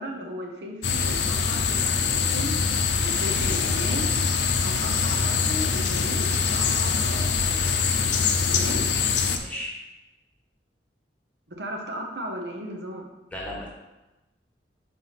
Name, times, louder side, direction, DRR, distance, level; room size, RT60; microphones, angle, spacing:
voice 1, 0.0-2.5 3.0-4.1 4.5-7.7 8.5-8.8 11.5-13.1, equal, 75° right, 1 dB, 1.0 m, -36 dB
sound 1, 0.8-9.4, left 5 dB, 80° left, 0.6 m, -24 dB
voice 2, 9.4-9.7 13.3-13.7, left 1 dB, 10° left, -4 dB, 1.3 m, -34 dB
5.7 x 4.7 x 4.2 m, 1.0 s
head